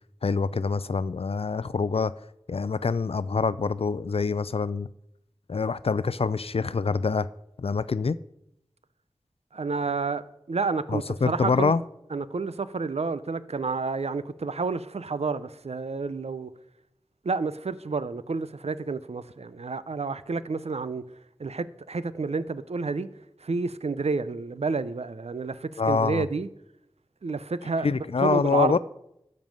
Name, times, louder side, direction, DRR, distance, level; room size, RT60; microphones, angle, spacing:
voice 1, 0.2-2.1 2.5-4.9 5.5-7.3 7.6-8.2 10.9-11.8 25.8-26.3 27.8-28.8, left 4 dB, 65° left, 0.4 m, -25 dB
voice 2, 9.5-11.7 12.1-16.5 17.2-21.0 21.4-23.1 23.4-26.5 27.2-28.8, right 4 dB, 90° right, 0.6 m, -30 dB
12.5 x 5.4 x 7.7 m
wide cardioid pair, 45°, 11 cm